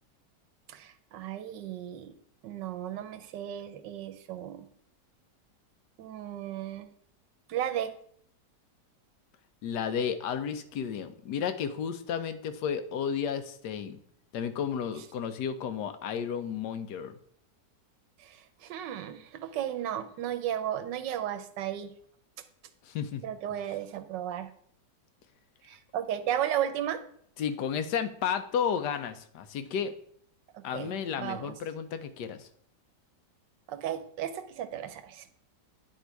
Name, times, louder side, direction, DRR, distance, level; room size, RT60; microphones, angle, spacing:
voice 1, 0.7-2.1 2.4-4.7 6.0-6.9 7.5-7.9 18.2-18.4 18.6-21.9 23.2-24.5 25.6-27.0 30.5-31.6 33.7-35.3, right 10 dB, 85° right, 10 dB, 1.4 m, -34 dB
voice 2, 9.6-14.0 14.3-17.2 22.8-23.2 27.4-30.0 30.6-32.5, left 7 dB, 75° left, 10 dB, 1.3 m, -32 dB
9.8 x 3.7 x 4.6 m, 0.64 s
omnidirectional pair, 1.9 m